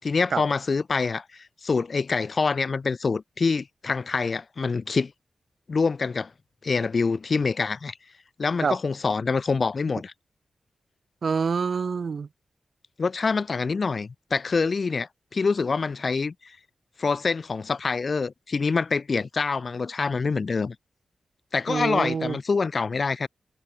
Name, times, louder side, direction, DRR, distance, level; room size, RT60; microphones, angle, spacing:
voice 1, 0.0-5.1 5.7-6.3 6.6-8.0 8.4-10.1 13.0-16.6 17.0-20.8 21.5-23.3, left 4 dB, 45° left, 5.5 m, -26 dB
voice 2, 11.2-12.3 21.7-22.4, right 5 dB, 55° right, 4.8 m, -26 dB
wide cardioid pair, 140°, 0 cm